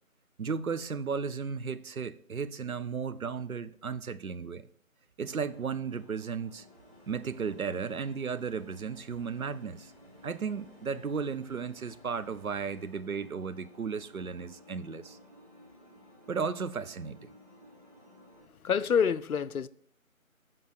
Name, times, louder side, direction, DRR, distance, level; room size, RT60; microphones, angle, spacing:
voice 1, 0.4-4.7 5.2-6.7 7.1-9.9 10.2-15.2 16.3-17.3, right 5 dB, 80° right, 0.7 m, -35 dB
sound 1, 5.2-18.5, equal, 25° right, 0.9 m, -56 dB
sound 2, 6.6-13.1, left 1 dB, 45° left, 3.3 m, -61 dB
voice 2, 18.5-19.7, left 7 dB, 85° left, 0.6 m, -27 dB
7.6 x 5.4 x 6.2 m
figure-of-eight pair, 170°, 42 cm